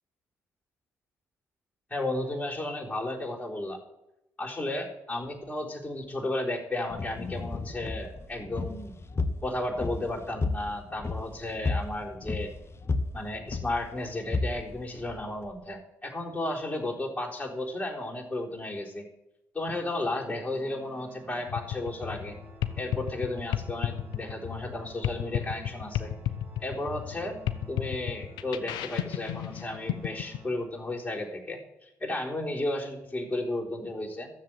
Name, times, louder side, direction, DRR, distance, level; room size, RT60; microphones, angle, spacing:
voice 1, 1.9-3.8 4.4-9.0 9.4-12.5 13.1-19.1 19.5-22.4 22.8-26.1 26.6-27.4 27.7-34.3, left 2 dB, 15° left, -4 dB, 3.9 m, -33 dB
sound 1, 6.9-15.6, left 3 dB, 35° left, 1.4 m, -33 dB
Organ, 20.4-31.2, right 3 dB, 30° right, 2.9 m, -53 dB
sound 2, 21.5-30.4, left 12 dB, 80° left, 0.9 m, -33 dB
13.0 x 7.6 x 9.0 m, 0.90 s
hypercardioid pair, 50°, 8 cm